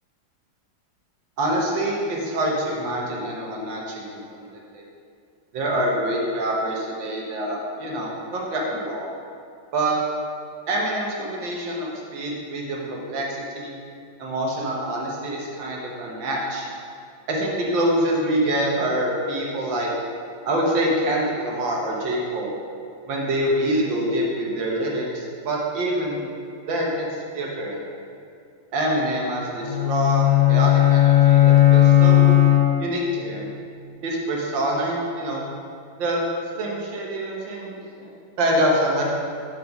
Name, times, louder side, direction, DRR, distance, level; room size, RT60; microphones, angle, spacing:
voice 1, 1.4-4.8 5.5-9.1 9.7-10.0 10.7-13.7 14.2-16.7 17.3-19.9 20.5-22.6 23.1-26.3 26.7-27.1 27.3-27.8 28.7-32.3 32.8-33.5 34.0-35.4 36.0-36.3 36.5-39.0, right 1 dB, 80° right, -2 dB, 1.9 m, -25 dB
sound 1, 29.6-33.1, left 13 dB, 45° left, 0.6 m, -16 dB
6.3 x 4.0 x 5.8 m, 2.4 s
omnidirectional pair, 2.1 m